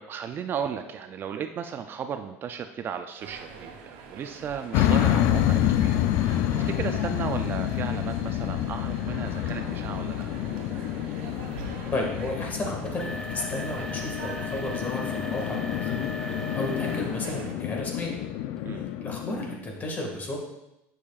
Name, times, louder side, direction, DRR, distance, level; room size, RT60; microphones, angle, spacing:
voice 1, 0.0-10.3 18.6-18.9, right 7 dB, 40° right, 8 dB, 0.4 m, -35 dB
sound 1, 3.2-17.5, right 5 dB, 90° right, 1.3 m, -43 dB
sound 2, 4.7-19.5, left 11 dB, 70° left, 0.5 m, -28 dB
sound 3, 9.8-17.2 17.6-18.0 18.6-18.7 19.3-19.4, left 1 dB, 10° left, 0.6 m, -41 dB
voice 2, 11.9-16.0 16.5-18.2 18.7-20.4, left 1 dB, 30° left, 0 dB, 1.8 m, -33 dB
10.0 x 6.4 x 2.4 m, 0.89 s
cardioid pair, 130°, 6 cm